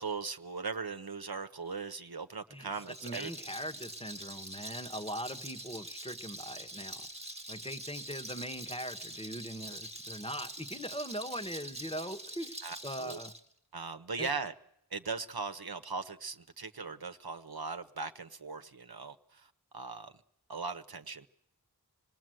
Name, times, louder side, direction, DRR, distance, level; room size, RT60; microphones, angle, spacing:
voice 1, 0.0-3.3 12.6-13.2 13.7-14.5 14.9-20.1 20.5-21.3, right 4 dB, 70° right, 1.1 m, -39 dB
Rattle, 2.8-13.4, right 1 dB, 15° right, 1.4 m, -45 dB
voice 2, 3.0-7.0 7.5-13.3 14.2-14.3, equal, 15° left, 1.3 m, -41 dB
26.0 x 19.5 x 7.8 m
wide cardioid pair, 50°, 39 cm